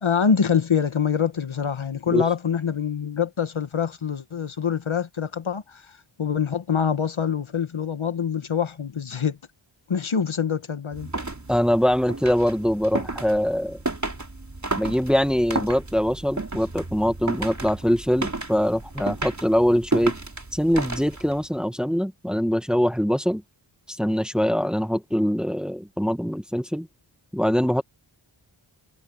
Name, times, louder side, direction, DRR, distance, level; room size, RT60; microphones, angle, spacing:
voice 1, 0.0-9.4 9.9-11.1, left 7 dB, 70° left, 1.4 m, -25 dB
sound 1, 10.9-21.5, right 2 dB, 35° right, 4.1 m, -32 dB
voice 2, 11.5-13.8 14.8-20.1 20.5-23.4 23.9-26.9 27.3-27.8, equal, ahead, 1.5 m, -23 dB
wide cardioid pair, 65°, 50 cm